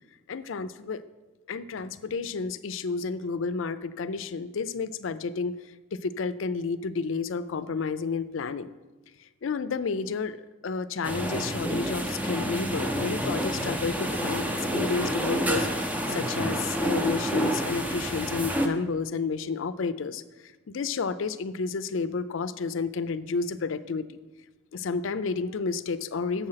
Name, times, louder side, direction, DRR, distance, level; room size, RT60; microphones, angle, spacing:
voice 1, 0.3-1.1 1.5-8.7 9.2-10.4 10.6-24.1 24.7-26.5, left 4 dB, 75° left, 14 dB, 0.4 m, -31 dB
sound 1, 11.0-18.7, equal, 10° right, 0.6 m, -29 dB
7.7 x 6.8 x 5.7 m, 1.2 s
head